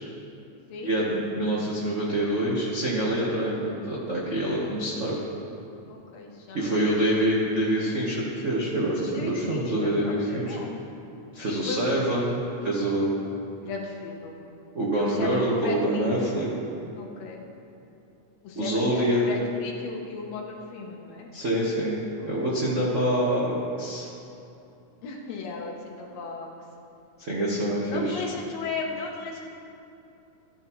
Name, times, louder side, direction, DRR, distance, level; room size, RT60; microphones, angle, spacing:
voice 1, 0.8-5.2 6.5-10.6 11.3-13.2 14.7-16.5 18.6-19.2 21.3-22.0 22.2-24.1 27.2-28.3, right 1 dB, 70° right, -6 dB, 0.7 m, -26 dB
voice 2, 5.9-6.8 9.1-10.8 11.5-12.2 13.6-14.5 15.0-16.1 17.0-17.4 18.4-21.3 22.4-22.5 25.0-26.5 27.9-29.6, left 4 dB, 70° left, 0 dB, 2.1 m, -36 dB
14.5 x 10.5 x 3.1 m, 2.8 s
omnidirectional pair, 3.4 m